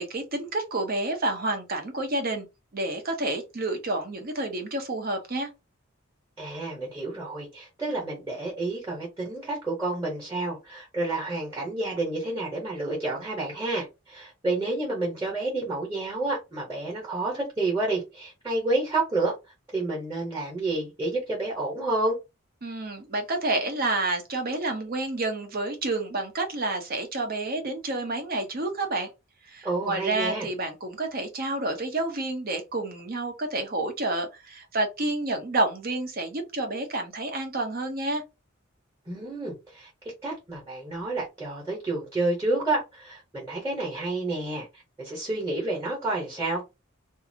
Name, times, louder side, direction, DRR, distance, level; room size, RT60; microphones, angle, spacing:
voice 1, 0.0-2.5 2.7-5.5 22.6-29.1 29.4-38.2, right 2 dB, 45° right, 0.8 m, -29 dB
voice 2, 6.4-19.3 19.7-22.2 29.6-30.5 39.1-39.9 40.2-44.7 45.0-46.6, right 2 dB, 15° right, 1.0 m, -29 dB
2.7 x 2.5 x 2.7 m
head